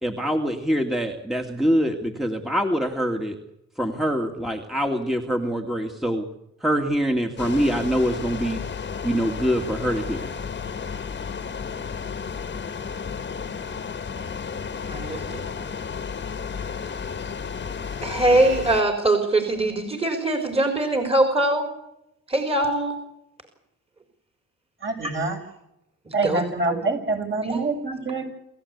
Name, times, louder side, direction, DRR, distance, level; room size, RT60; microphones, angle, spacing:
voice 1, 0.0-3.4 3.8-6.2 6.6-8.6 9.0-10.3, equal, ahead, 3 dB, 2.3 m, -24 dB
sound 1, 7.4-18.8, left 6 dB, 35° left, 1.8 m, -32 dB
voice 2, 14.9-15.4 18.0-21.7 22.3-22.9 25.0-25.1 26.1-26.4 27.5-27.6, right 2 dB, 20° right, 5 dB, 4.2 m, -22 dB
voice 3, 24.8-25.4 26.1-28.3, right 3 dB, 40° right, 2 dB, 7.8 m, -25 dB
27.0 x 15.0 x 8.3 m, 0.85 s
cardioid pair, 90°, 30 cm